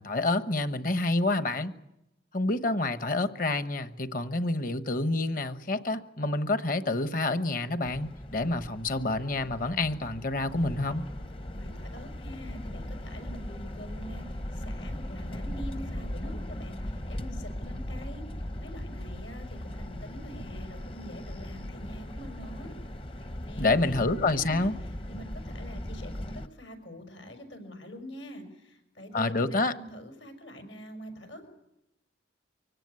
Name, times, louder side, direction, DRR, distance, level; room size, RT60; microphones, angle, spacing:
voice 1, 0.0-1.7 2.3-11.0 23.6-24.7 29.1-29.7, left 2 dB, 45° left, 11 dB, 1.2 m, -28 dB
sound 1, 7.8-26.5, left 1 dB, 30° left, 0.8 m, -38 dB
voice 2, 11.5-22.7 23.4-31.5, equal, 80° left, 6 dB, 5.8 m, -45 dB
24.5 x 17.5 x 9.7 m, 0.88 s
head